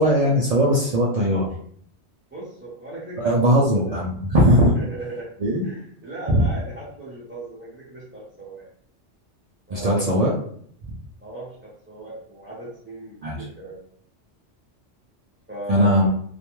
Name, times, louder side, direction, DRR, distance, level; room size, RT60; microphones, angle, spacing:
voice 1, 0.0-1.5 3.2-4.7 5.4-5.6 6.3-6.4 9.7-10.3 13.2-13.4 15.7-16.1, equal, 65° right, -4 dB, 0.3 m, -19 dB
voice 2, 2.3-4.0 4.7-5.3 5.6-8.7 9.7-10.2 11.2-13.8 15.5-16.1, right 1 dB, 15° right, -10 dB, 0.6 m, -38 dB
2.4 x 2.2 x 3.0 m, 0.62 s
omnidirectional pair, 1.2 m